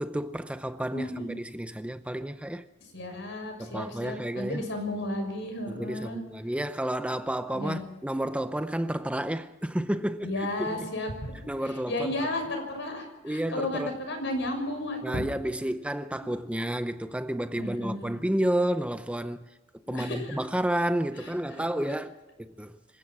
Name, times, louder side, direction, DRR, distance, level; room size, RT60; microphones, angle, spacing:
voice 1, 0.0-2.6 3.6-4.7 5.8-10.9 11.5-12.2 13.2-13.9 15.0-19.5 19.9-22.1 22.4-22.8, right 1 dB, 5° right, 0.6 m, -31 dB
voice 2, 0.9-1.3 2.9-6.2 7.5-7.8 10.2-11.1 11.9-15.2 17.6-18.2 19.9-20.4 21.2-21.3, left 1 dB, 65° left, 6.5 m, -33 dB
27.0 x 16.0 x 6.2 m
head